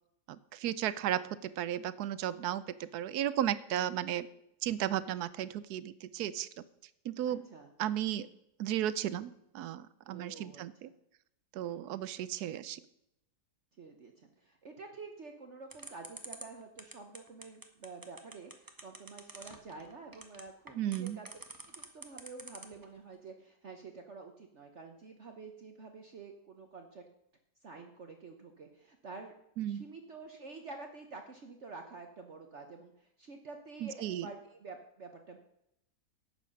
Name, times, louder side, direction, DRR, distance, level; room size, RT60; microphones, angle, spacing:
voice 1, 0.5-4.3 4.6-6.5 7.0-7.4 7.8-8.3 8.6-10.9 11.5-12.8 20.8-21.2 29.6-29.8 33.8-34.3, right 11 dB, 75° right, 16 dB, 1.1 m, -34 dB
voice 2, 7.3-7.7 10.1-10.9 11.7-11.9 13.8-27.0 27.6-29.3 29.7-35.4, right 4 dB, 50° right, 4 dB, 1.2 m, -49 dB
sound 1, 15.7-22.8, right 2 dB, 15° right, 0.8 m, -47 dB
11.5 x 8.2 x 5.3 m, 0.79 s
omnidirectional pair, 1.8 m